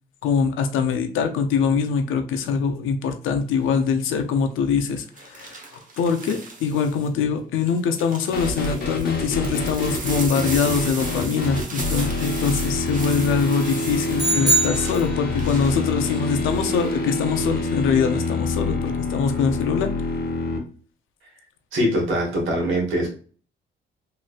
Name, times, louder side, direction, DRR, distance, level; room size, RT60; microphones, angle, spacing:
voice 1, 0.2-19.9, left 6 dB, 80° left, 6 dB, 0.6 m, -23 dB
sound 1, 3.5-3.8 5.2-7.1 7.6-16.9 17.3-17.7, right 3 dB, 40° right, 0.9 m, -37 dB
sound 2, 8.3-20.6, left 3 dB, 50° left, 0.9 m, -26 dB
sound 3, 14.2-15.6, right 2 dB, 20° right, 1.4 m, -22 dB
voice 2, 21.7-23.1, equal, 80° right, -1 dB, 1.5 m, -22 dB
3.1 x 3.1 x 2.4 m, 0.42 s
cardioid pair, 90°, 20 cm